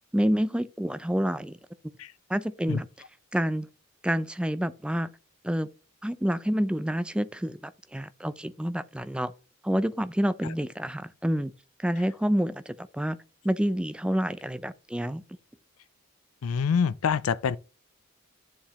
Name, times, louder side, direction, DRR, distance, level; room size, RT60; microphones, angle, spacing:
voice 1, 0.1-1.6 2.3-2.9 3.3-3.7 4.0-5.1 5.4-5.7 6.0-9.3 9.6-11.5 11.8-13.2 13.4-15.2, equal, 5° right, 0.4 m, -28 dB
voice 2, 16.4-17.6, left 6 dB, 85° left, 0.4 m, -26 dB
11.0 x 7.2 x 3.0 m
head